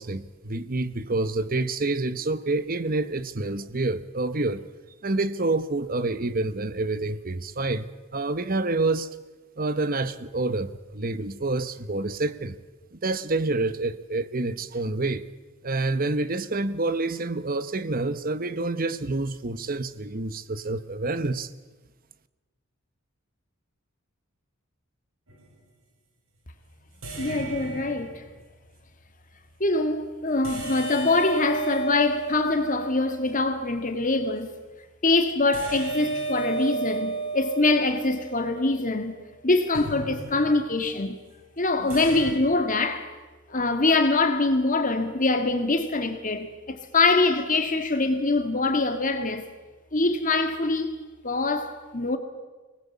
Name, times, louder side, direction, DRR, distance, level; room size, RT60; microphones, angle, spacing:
voice 1, 0.0-4.6 5.0-7.9 8.1-9.1 9.6-12.6 12.9-15.2 15.6-21.5, right 2 dB, 40° right, 1.0 m, -28 dB
sound 1, 25.3-25.6 27.0-28.5 30.4-33.5 35.5-38.9 39.7-40.8 41.9-42.4, right 3 dB, 75° right, 6.1 m, -33 dB
voice 2, 27.2-28.2 29.6-34.5 35.0-39.1 39.4-41.2 41.6-43.1 43.5-49.4 49.9-50.9 51.2-52.2, left 3 dB, 40° left, 1.9 m, -24 dB
24.5 x 19.0 x 8.4 m
head